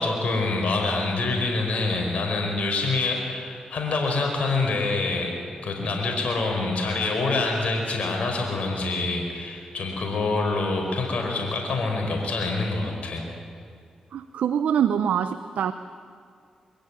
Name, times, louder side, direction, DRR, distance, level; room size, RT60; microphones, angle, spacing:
voice 1, 0.0-13.3, left 3 dB, 60° left, 1 dB, 4.7 m, -26 dB
voice 2, 14.1-15.7, right 8 dB, 80° right, 11 dB, 0.7 m, -24 dB
23.0 x 15.5 x 9.6 m, 2.2 s
supercardioid pair, 45°, 3 cm